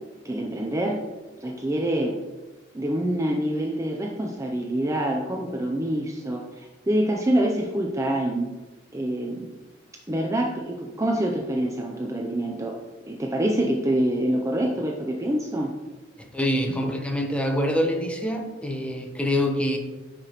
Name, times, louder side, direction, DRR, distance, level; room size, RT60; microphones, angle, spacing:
voice 1, 0.2-1.0 1.4-2.2 2.7-8.5 8.9-9.5 10.1-12.8 13.1-15.7, right 1 dB, 15° right, 1 dB, 0.5 m, -26 dB
voice 2, 16.2-19.8, left 1 dB, 5° left, 2 dB, 0.9 m, -25 dB
9.5 x 5.0 x 3.0 m, 1.2 s
head